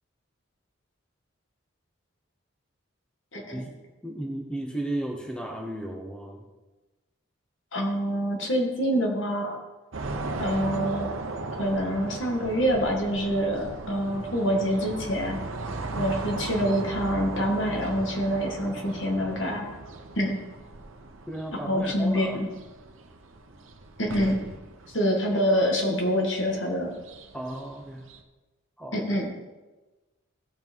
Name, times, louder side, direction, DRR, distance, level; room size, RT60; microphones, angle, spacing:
voice 1, 3.3-3.6 7.7-9.6 10.4-11.1 11.6-15.4 16.0-19.7 20.2-20.4 21.5-22.5 24.0-24.4 24.9-26.9 28.9-29.3, equal, 65° left, 0 dB, 2.1 m, -26 dB
voice 2, 4.0-6.5 15.9-16.1 21.3-22.5 27.3-28.1 28.8-29.0, right 1 dB, 5° left, 1 dB, 0.9 m, -35 dB
sound 1, 9.9-28.2, right 2 dB, 75° right, 0.9 m, -37 dB
16.0 x 5.9 x 4.6 m, 1.2 s
head